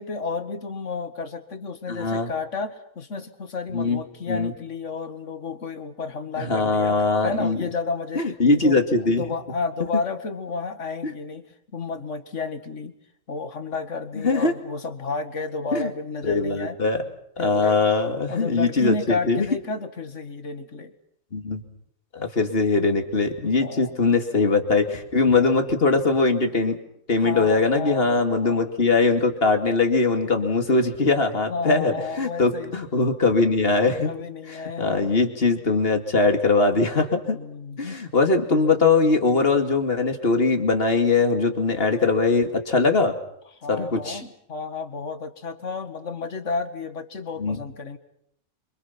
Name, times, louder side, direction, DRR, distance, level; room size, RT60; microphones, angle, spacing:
voice 1, 0.0-8.2 8.5-8.8 9.1-11.5 11.7-12.9 13.3-16.8 17.4-20.9 23.6-23.9 25.3-25.6 27.2-28.1 28.4-28.7 31.5-32.8 34.0-35.1 37.3-38.0 43.6-48.0, left 4 dB, 65° left, 9 dB, 2.1 m, -32 dB
voice 2, 1.9-2.3 3.7-4.0 4.3-4.5 6.4-7.6 8.1-9.2 11.0-11.1 14.1-14.5 15.7-15.9 16.2-17.0 17.4-19.4 21.3-21.6 22.1-26.8 27.1-34.1 34.8-37.4 37.8-43.1 43.7-44.2 47.4-47.6, left 3 dB, 45° left, 5 dB, 2.7 m, -21 dB
27.5 x 25.0 x 5.9 m, 0.72 s
omnidirectional pair, 1.4 m